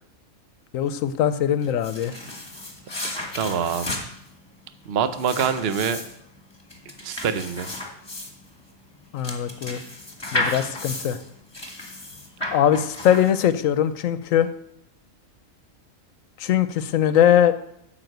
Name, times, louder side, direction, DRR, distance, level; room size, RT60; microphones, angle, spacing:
voice 1, 0.7-2.1 9.1-9.8 10.3-11.2 12.5-14.5 16.4-17.5, left 10 dB, 85° left, 13 dB, 1.1 m, -21 dB
sound 1, 1.6-13.7, left 2 dB, 20° left, 1.5 m, -33 dB
voice 2, 3.3-3.9 4.9-6.0 7.0-7.7, right 7 dB, 55° right, 11 dB, 0.9 m, -25 dB
9.0 x 6.0 x 7.9 m, 0.78 s
omnidirectional pair, 1.3 m